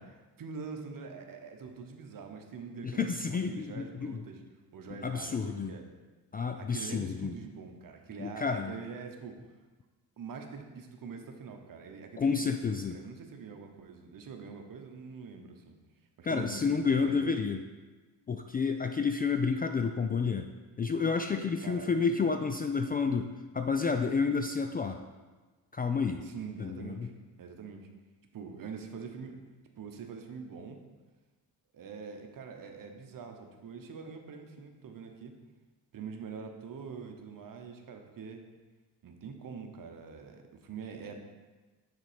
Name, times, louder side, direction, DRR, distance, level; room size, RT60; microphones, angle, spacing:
voice 1, 0.0-4.4 4.7-5.8 6.6-9.4 10.2-15.8 16.2-17.3 21.6-21.9 26.2-27.1 27.4-27.9 28.3-29.4 29.7-30.8 31.7-35.3 35.9-38.4 39.0-41.2, right 5 dB, 50° right, 4 dB, 1.0 m, -44 dB
voice 2, 2.8-4.2 5.0-5.7 6.3-7.3 8.2-8.7 12.2-13.0 16.2-17.6 18.3-20.5 20.8-25.0 25.7-26.2 26.6-27.1, left 5 dB, 25° left, 6 dB, 0.3 m, -30 dB
6.4 x 4.2 x 5.0 m, 1.3 s
supercardioid pair, 70°, 42 cm